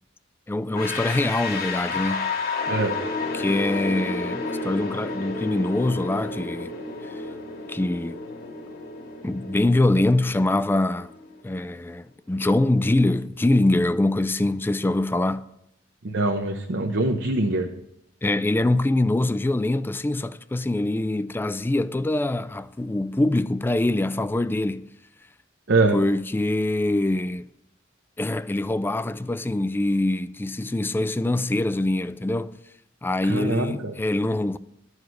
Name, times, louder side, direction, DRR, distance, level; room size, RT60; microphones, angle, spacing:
voice 1, 0.5-2.3 3.3-6.7 7.0-7.2 7.7-8.2 9.2-11.1 11.4-15.5 18.2-24.9 25.9-27.5 28.2-32.6 33.0-34.6, left 2 dB, 10° left, 0.3 m, -24 dB
sound 1, 0.7-11.6, left 3 dB, 50° left, 1.4 m, -31 dB
voice 2, 16.0-17.7 25.7-26.0 33.2-33.9, right 2 dB, 60° right, 0.8 m, -23 dB
12.5 x 4.8 x 7.7 m
head